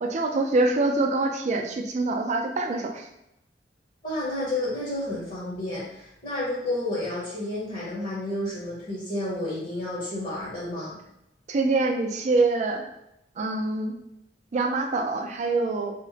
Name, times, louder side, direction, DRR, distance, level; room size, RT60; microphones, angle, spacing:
voice 1, 0.0-3.1 11.5-12.8 13.4-14.0 14.5-15.9, right 3 dB, 40° right, 3 dB, 0.3 m, -25 dB
voice 2, 4.0-11.0, left 1 dB, 45° left, -7 dB, 0.8 m, -31 dB
2.8 x 2.1 x 2.7 m, 0.83 s
head